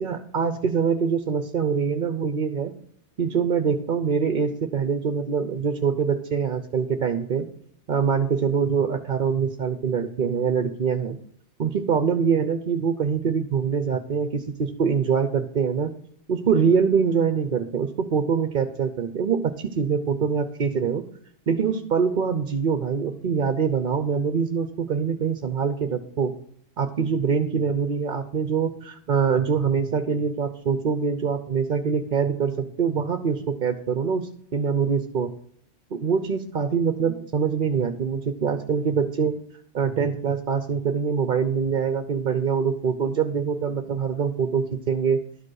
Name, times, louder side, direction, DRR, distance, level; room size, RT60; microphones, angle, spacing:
voice 1, 0.0-2.7 3.2-7.5 7.9-11.2 11.6-15.9 16.3-21.0 21.5-26.3 26.8-35.3 35.9-39.3 39.7-45.2, right 6 dB, 50° right, 8 dB, 0.8 m, -24 dB
11.5 x 5.1 x 6.3 m, 0.65 s
omnidirectional pair, 1.2 m